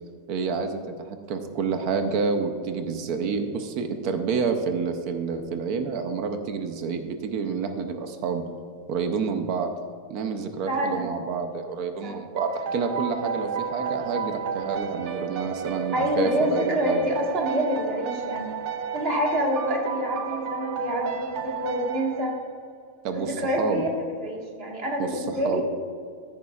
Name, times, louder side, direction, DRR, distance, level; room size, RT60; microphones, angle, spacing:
voice 1, 0.3-8.4 8.9-9.7 10.1-17.1 23.0-23.8 25.0-25.6, right 5 dB, 80° right, 6 dB, 1.2 m, -28 dB
voice 2, 10.7-11.1 12.0-12.2 15.9-18.5 18.9-22.3 23.1-23.9 24.2-25.6, equal, 40° right, -2 dB, 1.9 m, -27 dB
sound 1, 12.4-22.7, right 7 dB, 60° right, 0.8 m, -32 dB
13.5 x 9.5 x 2.4 m, 2.2 s
omnidirectional pair, 1.6 m